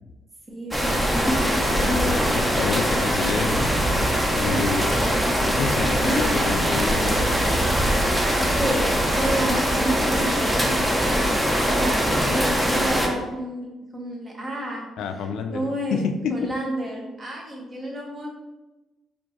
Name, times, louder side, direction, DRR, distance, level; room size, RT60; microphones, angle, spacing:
voice 1, 0.5-2.5 4.5-5.0 5.7-6.3 8.5-8.9 9.1-14.9 15.2-16.0 16.3-18.3, equal, 30° right, -1 dB, 1.0 m, -30 dB
sound 1, 0.7-13.1, equal, 10° right, 0.6 m, -22 dB
voice 2, 1.7-3.7 4.3-4.8 5.4-7.7 15.0-16.5, left 6 dB, 80° left, 6 dB, 0.3 m, -29 dB
4.3 x 2.5 x 3.0 m, 1.1 s
cardioid pair, 90°, 0 cm